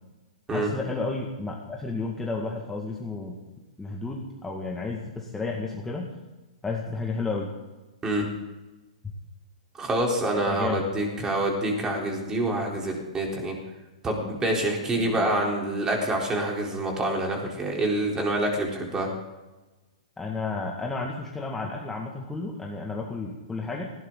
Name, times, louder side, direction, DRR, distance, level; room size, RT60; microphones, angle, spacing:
voice 1, 0.5-3.4 3.8-6.1 6.6-7.5 10.5-10.8 15.0-15.4 20.2-23.9, left 3 dB, 10° left, -1 dB, 2.0 m, -32 dB
voice 2, 9.8-13.5 14.0-19.1, right 1 dB, 15° right, 0 dB, 3.9 m, -26 dB
18.5 x 16.5 x 4.0 m, 1.1 s
hypercardioid pair, 135°, 4 cm